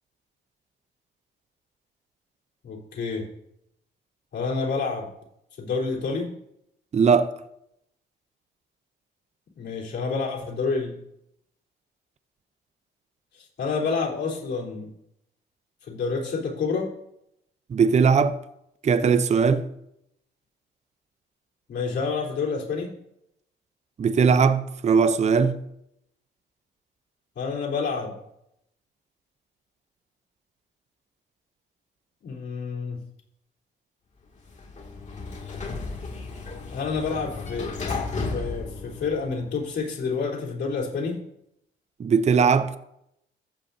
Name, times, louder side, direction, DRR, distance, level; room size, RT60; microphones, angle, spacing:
voice 1, 2.6-3.3 4.3-5.1 5.6-6.3 9.5-11.0 13.3-14.9 15.9-16.9 21.7-22.9 27.4-28.2 32.2-33.0 36.7-38.0 38.3-41.2, left 4 dB, 60° left, 3.6 m, -28 dB
voice 2, 6.9-7.3 17.7-18.3 18.8-19.7 24.0-25.6 42.0-42.8, right 5 dB, 35° right, 0.6 m, -19 dB
Sliding door, 34.4-39.6, left 3 dB, 35° left, 2.3 m, -34 dB
14.5 x 8.0 x 2.7 m
cardioid pair, 90°, 20 cm